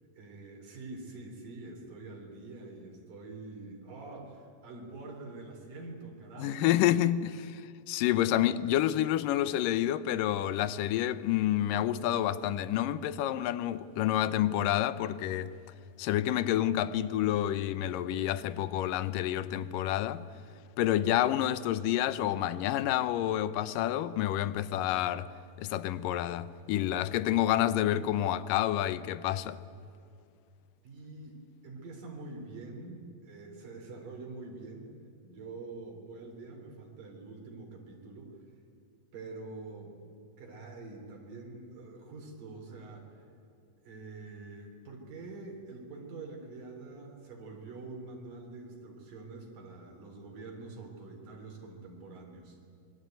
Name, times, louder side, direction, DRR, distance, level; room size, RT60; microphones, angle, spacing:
voice 1, 0.2-6.7 30.8-34.9 35.2-38.4 39.1-40.0 40.4-43.3 43.8-52.6, right 3 dB, 80° right, 5.5 m, -45 dB
voice 2, 6.4-15.5 16.0-20.3 20.8-25.3 25.6-29.6, left 12 dB, 85° left, 2.5 m, -29 dB
25.5 x 23.0 x 9.3 m
omnidirectional pair, 3.8 m